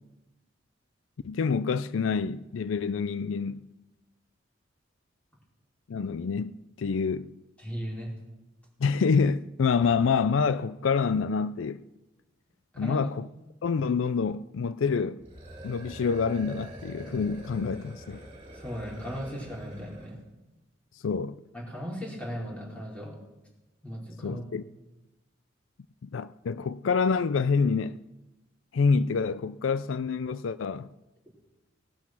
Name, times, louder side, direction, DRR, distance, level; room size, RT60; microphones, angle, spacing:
voice 1, 1.2-3.7 5.9-6.5 6.8-7.3 8.8-11.8 12.8-13.3 13.6-15.2 15.6-18.2 21.0-21.4 24.2-24.6 26.0-28.0 28.7-30.9, left 5 dB, 85° left, 0.4 m, -27 dB
voice 2, 7.6-8.1 12.7-13.0 18.5-20.2 21.5-23.2 23.8-24.4, equal, 5° left, 4.6 m, -37 dB
sound 1, 15.2-20.2, right 1 dB, 30° right, 3.8 m, -45 dB
18.0 x 11.5 x 6.1 m
head